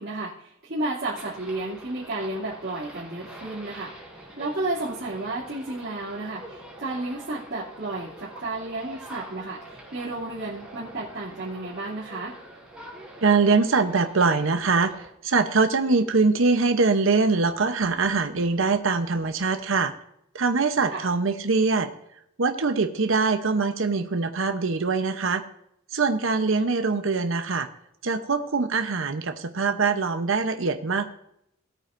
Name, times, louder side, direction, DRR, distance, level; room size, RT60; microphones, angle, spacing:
voice 1, 0.0-3.9 4.4-12.4 20.9-21.0, right 2 dB, 60° right, -9 dB, 2.7 m, -32 dB
sound 1, 1.1-15.1, right 1 dB, 5° right, 4.2 m, -45 dB
voice 2, 13.2-19.9 20.3-21.9 22.4-25.4 25.9-27.7 28.0-31.1, right 4 dB, 75° right, 7 dB, 0.8 m, -23 dB
18.0 x 8.9 x 2.6 m, 0.76 s
head